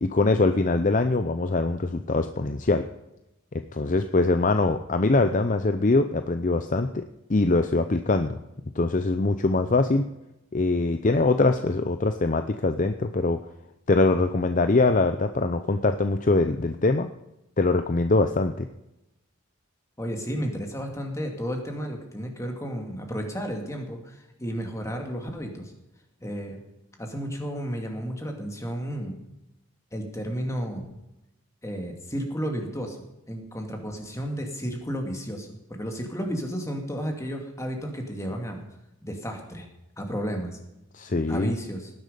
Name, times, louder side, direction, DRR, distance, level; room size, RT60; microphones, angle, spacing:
voice 1, 0.0-2.8 3.5-7.0 7.3-8.4 8.8-10.1 10.5-13.4 13.9-17.1 17.6-18.7 40.9-41.5, left 3 dB, 40° left, 8 dB, 0.6 m, -23 dB
voice 2, 20.0-25.7 26.2-26.6 27.0-29.2 29.9-31.0 31.6-33.0 33.3-38.6 39.0-39.7 40.0-40.6 41.3-41.9, equal, 15° left, 3 dB, 2.4 m, -32 dB
18.5 x 10.5 x 5.2 m, 0.92 s
head